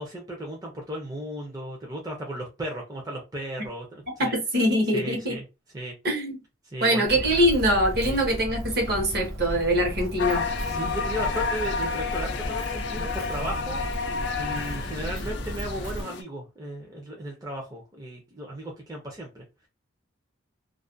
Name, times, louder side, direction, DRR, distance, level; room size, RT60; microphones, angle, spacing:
voice 1, 0.0-4.3 4.9-5.4 5.7-5.9 6.6-7.1 8.0-8.2 10.7-13.8 14.4-19.4, right 1 dB, 20° right, 0.5 m, -35 dB
voice 2, 4.2-5.4 6.0-6.4 6.8-10.5, equal, 50° right, 0.9 m, -23 dB
Walk footsteps, 7.1-16.0, equal, 85° right, 0.7 m, -34 dB
sound 1, 10.2-16.2, left 5 dB, 60° left, 0.4 m, -31 dB
2.3 x 2.1 x 2.5 m
head